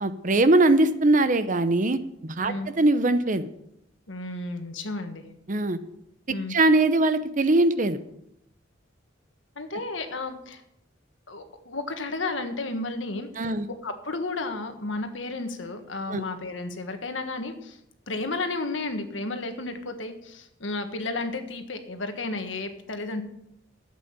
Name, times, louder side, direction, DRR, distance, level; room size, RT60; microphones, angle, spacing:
voice 1, 0.0-3.5 5.5-5.8 6.5-8.0 13.4-13.7 16.1-16.2, right 2 dB, 45° right, 11 dB, 0.8 m, -21 dB
voice 2, 4.1-5.2 6.3-6.6 9.5-10.6 11.3-13.5 13.8-17.8 18.1-23.2, left 2 dB, 80° left, 7 dB, 1.6 m, -32 dB
12.0 x 8.4 x 6.9 m, 0.79 s
head